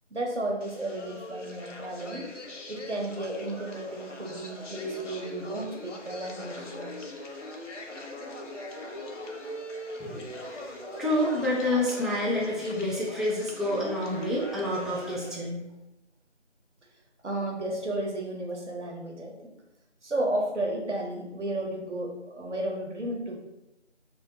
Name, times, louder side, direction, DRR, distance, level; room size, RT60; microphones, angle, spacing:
voice 1, 0.1-2.3 2.7-6.9 17.2-19.5 20.0-23.4, right 1 dB, 75° right, 0 dB, 0.7 m, -33 dB
sound 1, 0.6-15.4, left 1 dB, 85° left, 0.6 m, -41 dB
voice 2, 10.0-10.7 11.0-15.6, left 1 dB, ahead, -6 dB, 0.4 m, -28 dB
2.5 x 2.1 x 2.7 m, 0.95 s
figure-of-eight pair, 180°, 36 cm